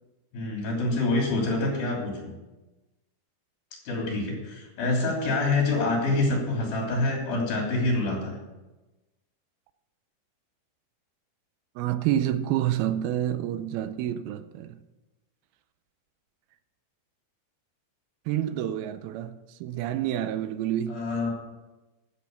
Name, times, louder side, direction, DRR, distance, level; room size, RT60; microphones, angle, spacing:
voice 1, 0.3-2.3 3.9-8.4 20.9-21.3, left 2 dB, 70° left, 4.9 m, -26 dB
voice 2, 11.8-14.8 18.3-21.0, right 11 dB, 85° right, 2.5 m, -28 dB
13.5 x 7.0 x 6.7 m
omnidirectional pair, 4.4 m